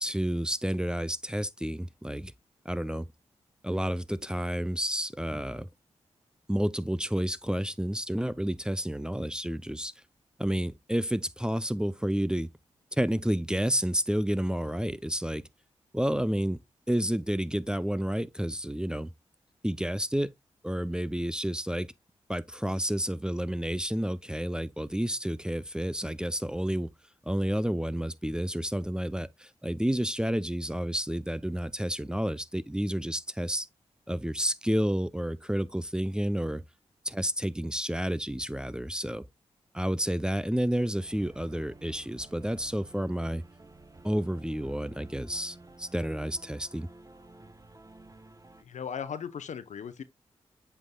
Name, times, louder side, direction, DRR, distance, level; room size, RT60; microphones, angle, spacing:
voice 1, 0.0-2.3 2.7-3.1 3.6-5.7 6.5-9.9 10.4-12.5 13.0-15.4 15.9-16.6 16.9-19.1 19.6-20.3 20.6-21.9 22.3-26.9 27.3-33.7 34.1-36.6 37.0-39.2 39.7-43.4 44.0-46.9, equal, 5° right, 0.6 m, -30 dB
sound 1, 41.0-48.6, right 2 dB, 30° right, 1.1 m, -52 dB
voice 2, 48.6-50.0, left 7 dB, 75° left, 0.9 m, -37 dB
8.1 x 5.7 x 2.2 m
cardioid pair, 45°, 12 cm